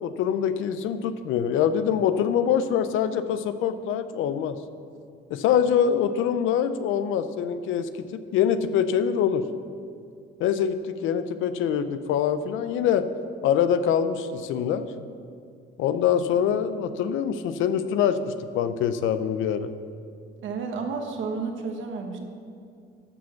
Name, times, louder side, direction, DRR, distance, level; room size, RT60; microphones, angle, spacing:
voice 1, 0.0-4.6 5.3-8.1 8.3-9.4 10.4-13.0 13.4-14.9 15.8-19.7, left 8 dB, 90° left, 11 dB, 0.6 m, -24 dB
voice 2, 20.4-22.2, right 4 dB, 75° right, 4 dB, 1.4 m, -31 dB
12.0 x 5.2 x 7.0 m, 2.4 s
cardioid pair, 90°, 20 cm